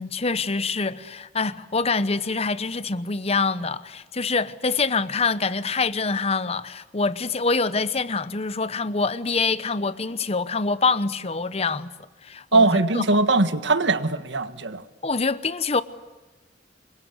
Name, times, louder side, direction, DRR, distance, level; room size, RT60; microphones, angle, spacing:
voice 1, 0.0-11.9 12.2-13.0 15.0-15.8, left 4 dB, 35° left, 0.9 m, -25 dB
voice 2, 12.5-14.8, right 3 dB, 80° right, 1.5 m, -20 dB
27.5 x 23.5 x 8.2 m
head